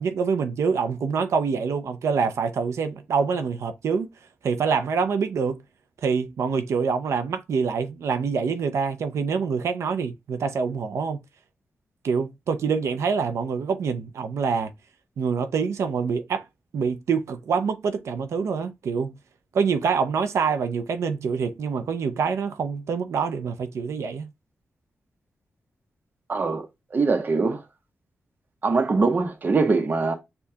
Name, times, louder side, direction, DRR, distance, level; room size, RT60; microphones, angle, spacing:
voice 1, 0.0-4.1 4.4-5.6 6.0-11.2 12.0-14.7 15.2-16.4 16.7-19.1 19.5-24.3, right 5 dB, 90° right, 0.5 m, -25 dB
voice 2, 26.3-26.7 26.9-27.6 28.6-30.1, right 4 dB, 40° right, 0.7 m, -22 dB
6.7 x 2.3 x 2.7 m
wide cardioid pair, 130°, 5 cm